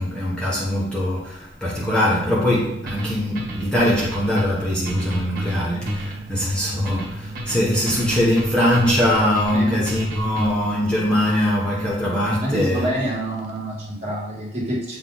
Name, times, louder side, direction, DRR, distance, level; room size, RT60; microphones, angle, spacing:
voice 1, 0.0-12.9, left 1 dB, 5° left, -7 dB, 1.1 m, -22 dB
sound 1, 1.7-13.9, right 2 dB, 75° right, 0.7 m, -36 dB
sound 2, 2.9-10.7, equal, 55° right, 1.7 m, -31 dB
voice 2, 12.4-15.0, right 1 dB, 35° right, -6 dB, 1.9 m, -27 dB
7.7 x 3.3 x 3.9 m, 0.79 s
head